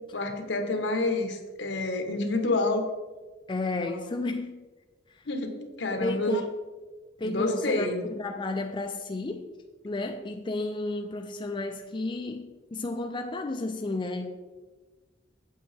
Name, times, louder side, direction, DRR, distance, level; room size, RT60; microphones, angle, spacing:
voice 1, 0.0-2.9 5.3-6.4 7.2-8.1, left 2 dB, 75° left, 1.2 m, -28 dB
voice 2, 3.5-4.7 5.1-5.3 5.9-6.5 7.2-9.5 9.8-14.4, left 2 dB, 25° left, 0.4 m, -32 dB
8.4 x 7.9 x 3.4 m
head